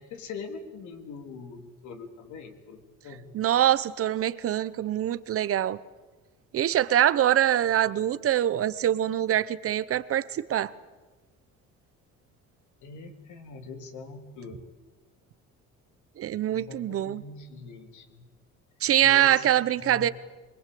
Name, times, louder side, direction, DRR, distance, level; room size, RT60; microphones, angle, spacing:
voice 1, 0.0-3.3 12.8-14.7 16.5-18.3 19.0-19.5 19.8-20.1, left 4 dB, 75° left, 3.3 m, -42 dB
voice 2, 3.3-5.8 6.5-10.7 16.2-17.2 18.8-20.1, right 11 dB, 50° right, 0.9 m, -24 dB
24.5 x 21.5 x 8.5 m
cardioid pair, 140°, 30 cm